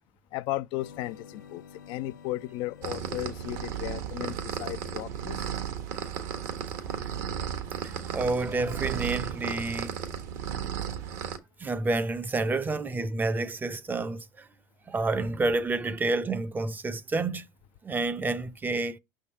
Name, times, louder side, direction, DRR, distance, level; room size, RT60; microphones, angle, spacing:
voice 1, 0.3-5.5, left 16 dB, 55° left, 0.3 m, -35 dB
sound 1, 0.8-5.0, left 7 dB, 85° left, 0.7 m, -51 dB
sound 2, 2.8-11.4, right 8 dB, 70° right, 1.4 m, -34 dB
voice 2, 8.1-10.0 11.6-14.4 14.9-17.4 17.8-19.0, right 3 dB, 20° right, 0.7 m, -29 dB
6.1 x 3.6 x 4.3 m
hypercardioid pair, 85°, 10 cm